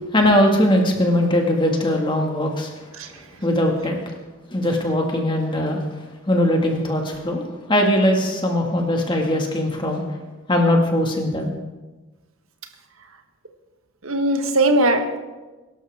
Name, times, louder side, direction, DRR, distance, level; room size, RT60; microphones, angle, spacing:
voice 1, 0.1-2.7 3.4-4.0 4.5-5.8 6.3-7.4 7.7-10.0 10.5-11.5, left 1 dB, 25° left, 1 dB, 2.0 m, -20 dB
voice 2, 14.0-15.2, right 1 dB, 85° right, 5 dB, 1.5 m, -19 dB
22.5 x 12.0 x 3.6 m, 1.2 s
head